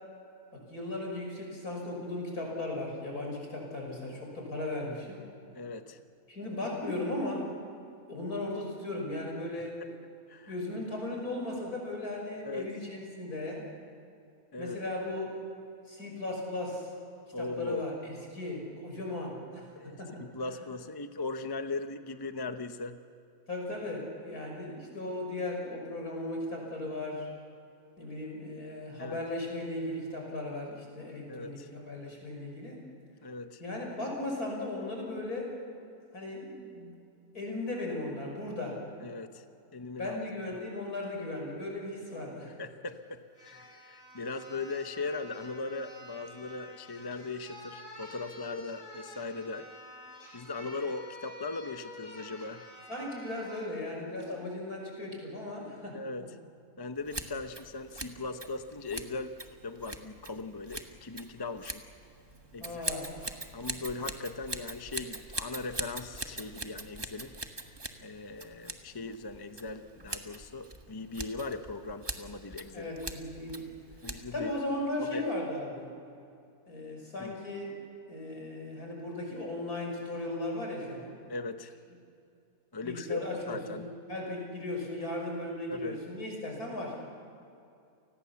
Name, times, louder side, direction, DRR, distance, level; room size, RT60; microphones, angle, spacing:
voice 1, 0.5-5.2 6.3-7.5 8.1-9.8 10.5-13.7 14.6-15.3 15.9-16.9 17.4-20.6 23.5-27.3 28.0-32.8 33.6-35.5 36.1-36.9 37.3-38.8 40.0-42.6 52.9-56.0 62.6-63.3 72.7-73.7 74.3-75.9 76.7-77.7 78.1-81.2 82.8-87.0, left 2 dB, 75° left, 0 dB, 6.3 m, -37 dB
voice 2, 5.5-6.0 10.3-10.6 12.4-12.6 14.5-14.8 17.3-17.8 18.2-18.3 19.8-23.0 29.0-29.2 31.3-31.7 33.2-33.6 39.0-39.4 39.7-40.1 42.6-49.7 50.3-52.6 55.9-56.3 56.8-59.3 59.6-61.8 62.5-62.8 63.5-67.3 68.0-72.9 74.0-74.5 75.0-75.3 77.2-77.3 81.3-81.7 82.7-83.9 85.7-86.0, left 3 dB, 20° left, 8 dB, 0.7 m, -39 dB
sound 1, 42.9-43.0 43.4-53.7 54.2-54.4, left 1 dB, 55° left, 4.1 m, -49 dB
Scissors, 57.0-74.5, right 2 dB, 15° right, 1.4 m, -42 dB
29.5 x 20.0 x 7.2 m, 2.6 s
omnidirectional pair, 1.6 m